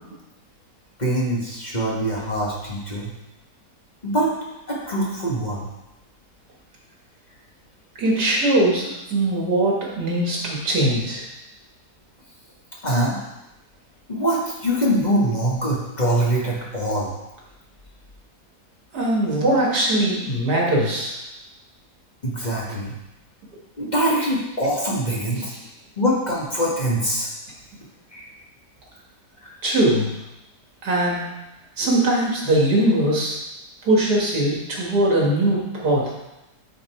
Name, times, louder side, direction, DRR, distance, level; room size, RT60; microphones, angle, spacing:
voice 1, 1.0-3.1 4.0-4.3 4.7-5.7 12.8-13.2 14.1-17.1 22.2-22.9 23.8-25.5 26.0-27.3 28.1-28.2 29.4-29.5, right 1 dB, 30° left, -4 dB, 1.4 m, -23 dB
voice 2, 8.0-11.2 18.9-21.2 25.4-25.5 29.6-30.1 30.8-31.3 31.8-33.4 33.8-36.1, right 1 dB, 85° right, -3 dB, 2.4 m, -21 dB
9.4 x 4.1 x 4.5 m, 0.95 s
omnidirectional pair, 1.7 m